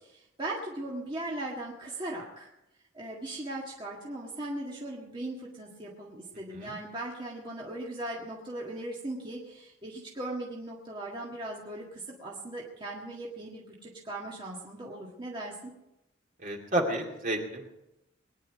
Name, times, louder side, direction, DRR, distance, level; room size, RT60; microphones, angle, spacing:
voice 1, 0.0-2.5 2.9-15.5, right 1 dB, 25° right, -3 dB, 1.9 m, -38 dB
voice 2, 16.4-17.7, right 1 dB, 45° right, 1 dB, 2.5 m, -31 dB
21.5 x 10.5 x 5.1 m, 0.91 s
head